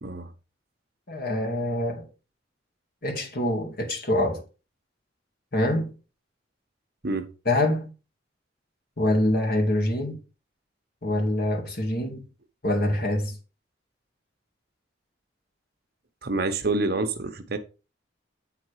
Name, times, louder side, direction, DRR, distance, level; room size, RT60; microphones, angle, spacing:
voice 1, 0.0-0.3 7.0-7.3 16.2-17.6, right 3 dB, 55° right, 1.0 m, -27 dB
voice 2, 1.1-2.1 3.0-4.4 5.5-5.9 7.5-7.9 9.0-10.2 11.0-12.2 12.6-13.4, left 1 dB, 55° left, 2.1 m, -25 dB
8.5 x 4.0 x 4.7 m
head